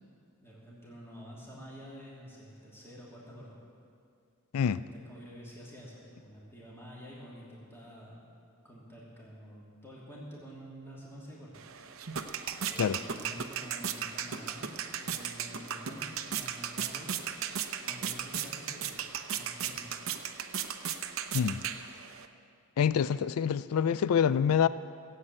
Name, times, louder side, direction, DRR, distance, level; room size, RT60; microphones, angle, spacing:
voice 1, 0.4-3.6 4.7-8.2 8.6-11.6 12.6-17.3 17.8-19.0 19.3-19.9, equal, 10° left, -6 dB, 2.7 m, -48 dB
sound 1, 11.5-22.3, right 8 dB, 65° right, 0.8 m, -36 dB
voice 2, 22.8-24.7, left 7 dB, 80° left, 16 dB, 0.4 m, -26 dB
17.5 x 8.0 x 8.9 m, 2.4 s
head